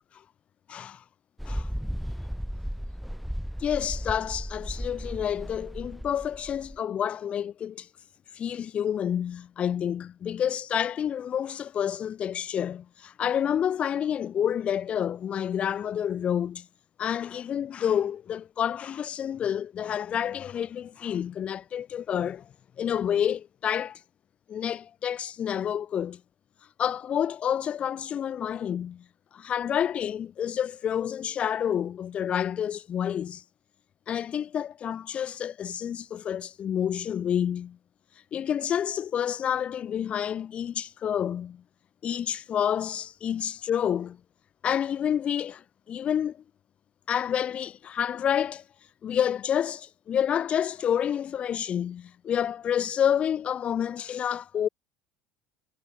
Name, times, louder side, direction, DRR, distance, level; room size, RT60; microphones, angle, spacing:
voice 1, 0.7-1.0 1.4-1.7 3.6-7.9 8.3-16.7 17.0-22.5 22.8-24.0 24.5-26.2 26.8-29.0 29.3-33.4 34.1-37.8 38.3-41.6 42.0-44.2 44.6-46.4 47.1-48.6 49.0-54.7, left 9 dB, 45° left, 2.8 m, -29 dB
Mechanical fan, 1.4-6.8, equal, ahead, 2.6 m, -35 dB
hypercardioid pair, 65°, 3 cm